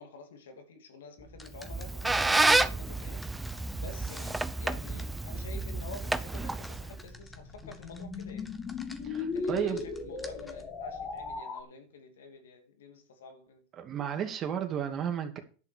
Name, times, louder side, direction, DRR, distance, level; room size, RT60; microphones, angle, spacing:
voice 1, 0.0-8.5 9.3-13.7, left 4 dB, 90° left, 2.7 m, -49 dB
calculator fingertips, 1.2-11.4, equal, 10° left, 1.5 m, -51 dB
Squeak, 1.5-7.0, right 2 dB, 10° right, 0.7 m, -29 dB
sound 1, 6.8-11.6, left 4 dB, 35° left, 2.8 m, -37 dB
voice 2, 9.0-9.8 13.8-15.4, right 8 dB, 35° right, 2.5 m, -33 dB
11.0 x 6.1 x 7.0 m
supercardioid pair, 115°, 0 cm